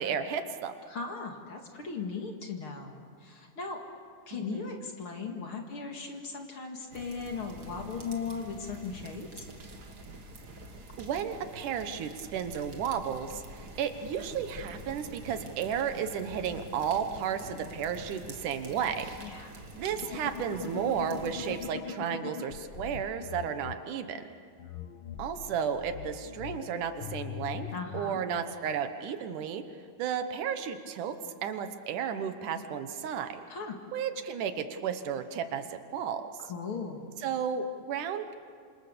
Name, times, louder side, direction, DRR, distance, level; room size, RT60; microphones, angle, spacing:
voice 1, 0.0-0.7 4.3-4.7 11.0-19.1 19.8-24.2 25.2-27.7 27.9-29.6 30.0-31.2 31.4-33.4 33.9-36.5 37.2-38.4, right 7 dB, 75° right, 9 dB, 2.6 m, -33 dB
voice 2, 0.9-3.8 4.3-9.5 19.2-19.6 27.7-28.2 33.5-33.8 36.5-37.1, left 5 dB, 45° left, 2 dB, 2.6 m, -38 dB
sound 1, 6.9-21.7, right 2 dB, 35° right, 2.1 m, -47 dB
sound 2, 20.0-23.7 24.6-28.1, left 8 dB, 85° left, 1.1 m, -41 dB
27.0 x 27.0 x 6.8 m, 2.1 s
omnidirectional pair, 3.7 m